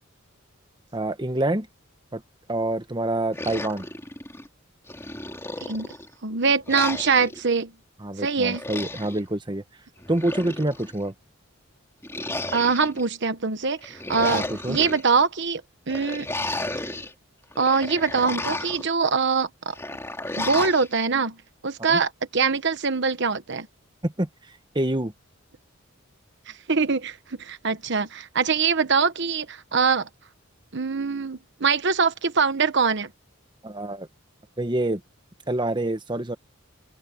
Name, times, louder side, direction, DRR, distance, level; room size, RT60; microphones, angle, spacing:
voice 1, 0.9-1.7 2.1-2.2 2.5-3.9 8.0-9.6 10.1-11.1 14.3-14.8 21.9-22.0 24.0-24.3 24.7-25.1 33.6-34.1 34.6-35.0 35.5-36.4, right 1 dB, 20° right, 1.2 m, -26 dB
sound 1, 3.3-4.5 4.9-6.1 6.7-7.4 8.4-9.2 10.0-11.0 12.0-13.0 13.8-15.0 15.9-17.1 17.5-18.9 19.7-20.9, left 2 dB, 15° left, 2.7 m, -33 dB
voice 2, 6.2-7.7 8.2-8.6 12.5-15.6 15.9-16.3 17.6-19.7 20.4-21.4 21.6-23.7 26.7-30.1 30.7-33.1, right 5 dB, 60° right, 1.1 m, -23 dB
open air
head